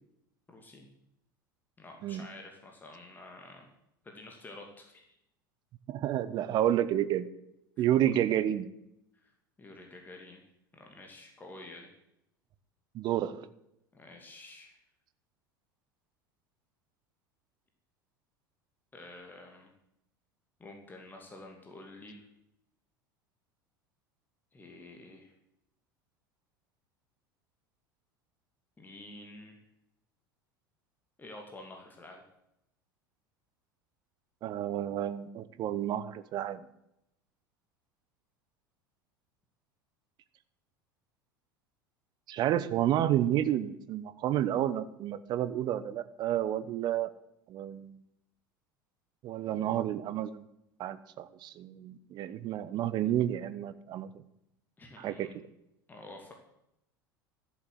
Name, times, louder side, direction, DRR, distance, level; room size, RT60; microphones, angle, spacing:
voice 1, 0.5-0.9 1.8-3.7 4.0-5.0 7.8-8.2 9.1-9.3 9.6-10.4 10.7-11.9 13.9-14.8 18.9-19.7 20.6-22.2 24.5-25.3 28.8-29.6 31.2-32.2 54.8-55.4 55.9-56.3, left 2 dB, 15° left, 2 dB, 2.6 m, -49 dB
voice 2, 5.9-7.3 7.8-8.7 12.9-13.4 34.4-36.6 42.3-47.1 47.5-48.0 49.2-50.4 50.8-54.1 55.0-55.3, right 11 dB, 40° right, 14 dB, 1.0 m, -30 dB
13.5 x 7.5 x 7.6 m, 0.81 s
figure-of-eight pair, 75°, 11 cm